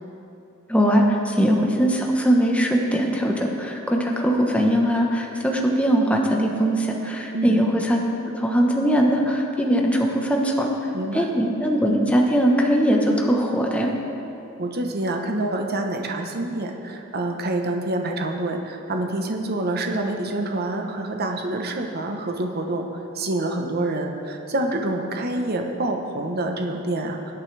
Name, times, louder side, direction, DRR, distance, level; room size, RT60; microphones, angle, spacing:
voice 1, 0.7-8.0 8.3-10.7 11.1-13.9, equal, 5° left, 0 dB, 1.1 m, -21 dB
voice 2, 10.9-11.3 14.6-22.9 23.1-27.3, right 2 dB, 50° right, 3 dB, 1.0 m, -27 dB
20.5 x 8.3 x 3.4 m, 2.9 s
head